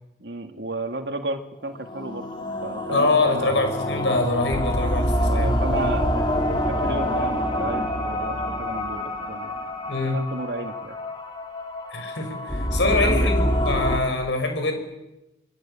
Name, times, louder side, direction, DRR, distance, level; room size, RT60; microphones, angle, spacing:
voice 1, 0.2-2.3 2.6-3.6 5.2-9.6 10.1-10.9 12.9-13.3, right 2 dB, 65° right, 6 dB, 2.0 m, -32 dB
sound 1, 1.7-14.0, left 1 dB, 25° left, 3.5 m, -26 dB
voice 2, 2.9-5.6 9.8-10.3 11.9-14.8, left 2 dB, 80° left, 6 dB, 5.8 m, -24 dB
25.5 x 23.5 x 8.7 m, 0.94 s
head